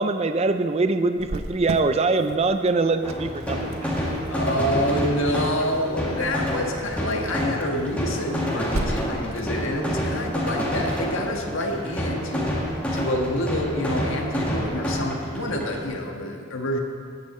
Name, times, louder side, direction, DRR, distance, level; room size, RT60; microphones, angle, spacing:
voice 1, 0.0-3.9, right 3 dB, 30° right, 9 dB, 0.4 m, -23 dB
Cricket, 1.2-12.6, right 2 dB, 85° right, 0.8 m, -38 dB
sound 1, 3.0-15.8, equal, 5° left, 2.0 m, -28 dB
voice 2, 4.3-12.5 12.9-16.8, left 1 dB, 70° left, 2 dB, 1.6 m, -27 dB
17.0 x 9.9 x 4.3 m, 2.2 s
head